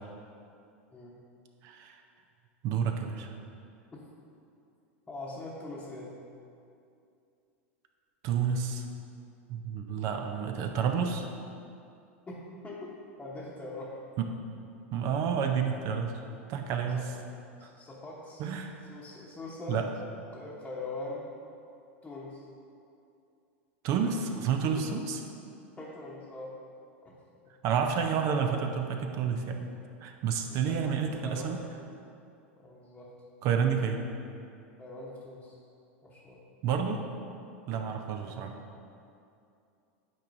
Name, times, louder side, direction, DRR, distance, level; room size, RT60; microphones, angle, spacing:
voice 1, 1.6-2.0 2.6-3.3 8.2-8.8 9.5-11.3 14.2-14.3 14.9-16.1 16.5-17.0 18.4-18.7 19.7-19.9 23.8-25.2 27.6-29.6 30.0-31.6 33.4-34.0 36.6-37.0 37.7-38.6, right 7 dB, 50° right, 4 dB, 0.5 m, -29 dB
voice 2, 5.1-6.2 12.3-14.0 16.9-17.0 17.6-18.6 18.9-21.3 22.0-22.5 24.8-24.9 25.8-26.5 27.0-27.1 30.7-31.9 32.6-33.1 34.8-35.5 36.0-36.4 37.7-38.0, left 2 dB, 15° left, -7 dB, 1.0 m, -42 dB
8.9 x 4.6 x 2.6 m, 2.6 s
hypercardioid pair, 100°, 7 cm